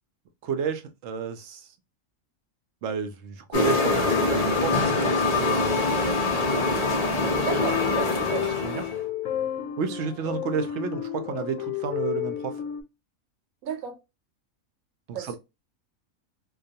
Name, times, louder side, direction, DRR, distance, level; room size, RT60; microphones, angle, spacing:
voice 1, 0.4-1.7 2.8-6.1 8.6-8.8 9.8-12.5 15.1-15.4, right 6 dB, 65° right, 0.8 m, -31 dB
sound 1, 3.5-9.0, left 3 dB, 40° left, 0.5 m, -24 dB
voice 2, 7.4-8.8 13.6-14.0 15.1-15.4, right 7 dB, 90° right, 1.1 m, -33 dB
sound 2, 7.5-12.8, left 11 dB, 85° left, 1.0 m, -32 dB
2.3 x 2.3 x 2.6 m
omnidirectional pair, 1.4 m